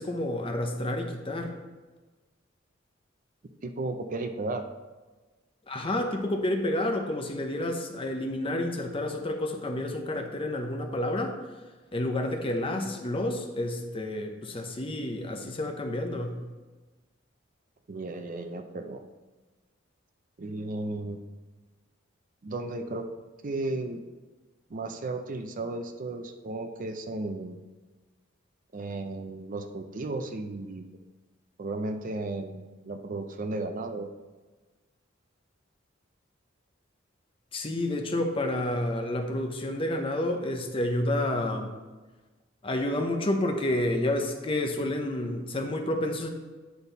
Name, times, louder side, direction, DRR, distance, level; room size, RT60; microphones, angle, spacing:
voice 1, 0.0-1.5 5.7-11.4 11.9-16.4 37.5-41.7 42.6-46.3, left 1 dB, 30° left, 3 dB, 0.7 m, -29 dB
voice 2, 3.6-4.6 17.9-19.0 20.4-21.2 22.4-23.1 23.4-24.0 24.7-27.6 28.7-30.9 31.6-34.1, right 2 dB, 40° right, 7 dB, 0.5 m, -34 dB
9.9 x 4.1 x 4.0 m, 1.3 s
head